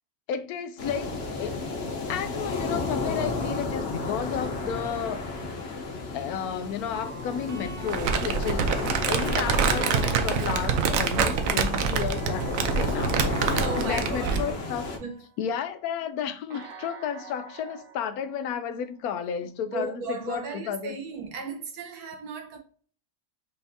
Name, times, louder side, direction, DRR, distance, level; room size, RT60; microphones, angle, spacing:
voice 1, 0.3-1.6 2.1-5.3 6.1-8.7 9.1-14.9 15.4-21.0, left 8 dB, 85° left, 1.1 m, -32 dB
sound 1, 0.8-15.0, left 3 dB, 50° left, 1.1 m, -32 dB
sound 2, 6.5-15.7 16.5-19.4, right 5 dB, 50° right, 0.8 m, -47 dB
Crumpling crinkling, 7.9-14.5, right 6 dB, 70° right, 1.0 m, -26 dB
voice 2, 13.4-14.6 15.0-15.2 19.7-22.6, right 4 dB, 90° right, 1.5 m, -35 dB
5.5 x 3.4 x 2.7 m
omnidirectional pair, 1.5 m